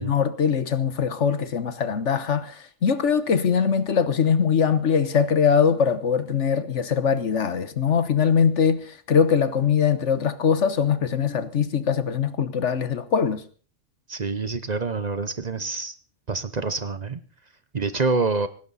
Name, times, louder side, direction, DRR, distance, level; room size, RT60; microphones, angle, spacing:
voice 1, 0.0-13.4, left 7 dB, 65° left, 1.4 m, -22 dB
voice 2, 14.1-15.9 16.3-17.2 17.7-18.5, right 3 dB, 35° right, 0.9 m, -26 dB
18.5 x 16.5 x 4.1 m
omnidirectional pair, 1.3 m